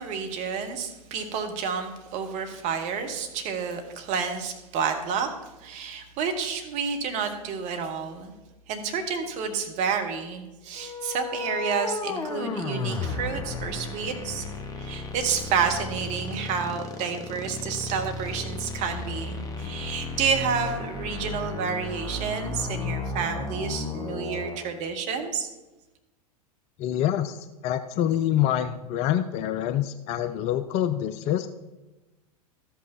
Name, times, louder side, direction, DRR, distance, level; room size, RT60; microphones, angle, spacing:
voice 1, 0.0-5.3 5.6-8.3 8.7-14.5 14.8-25.5, right 6 dB, 35° right, 5 dB, 1.3 m, -30 dB
sound 1, 10.8-24.6, left 3 dB, 20° left, 1.1 m, -34 dB
voice 2, 26.8-27.4 27.6-31.5, left 11 dB, 35° left, 11 dB, 0.4 m, -26 dB
13.0 x 5.4 x 4.3 m, 1.1 s
figure-of-eight pair, 90°, 20 cm